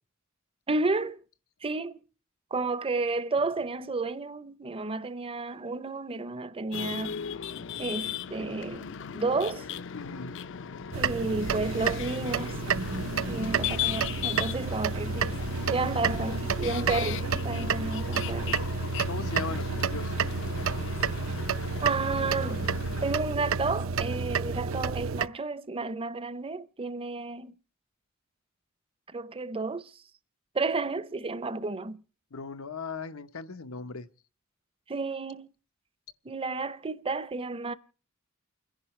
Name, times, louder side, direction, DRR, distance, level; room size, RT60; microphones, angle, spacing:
voice 1, 0.7-1.2 1.6-2.0 2.5-7.2 7.8-8.9 9.1-9.6 10.9-12.6 13.2-15.4 15.7-18.6 21.8-22.7 23.0-27.5 29.1-29.9 30.5-32.0 34.9-35.5 36.3-37.7, right 3 dB, 25° right, 0.6 m, -31 dB
sound 1, 6.7-23.1, left 8 dB, 65° left, 0.6 m, -37 dB
voice 2, 9.9-10.4 19.1-20.2 32.3-34.1, left 4 dB, 90° left, 1.0 m, -38 dB
sound 2, 10.9-25.3, right 5 dB, 70° right, 0.6 m, -30 dB
29.5 x 10.5 x 3.2 m
head